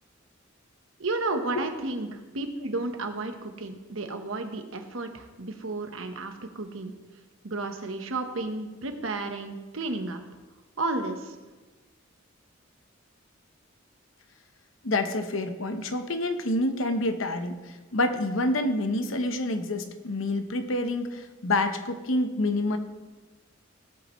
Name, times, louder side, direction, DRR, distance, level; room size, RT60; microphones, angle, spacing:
voice 1, 1.0-6.9 7.4-10.2 10.8-11.4, right 3 dB, 85° right, 6 dB, 1.2 m, -32 dB
voice 2, 14.8-17.6 17.9-22.8, left 2 dB, 85° left, 7 dB, 1.0 m, -27 dB
17.0 x 8.0 x 3.2 m, 1.2 s
head